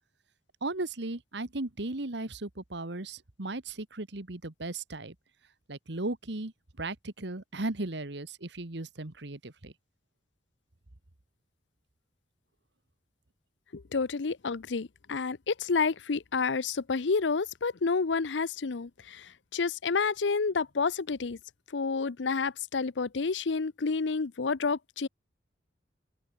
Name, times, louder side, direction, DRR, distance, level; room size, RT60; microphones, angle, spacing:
voice 1, 0.6-5.1 5.7-6.5 6.8-9.7, right 2 dB, 70° right, 1.7 m, -36 dB
voice 2, 13.7-21.4 21.7-25.1, left 4 dB, 75° left, 0.7 m, -29 dB
open air
head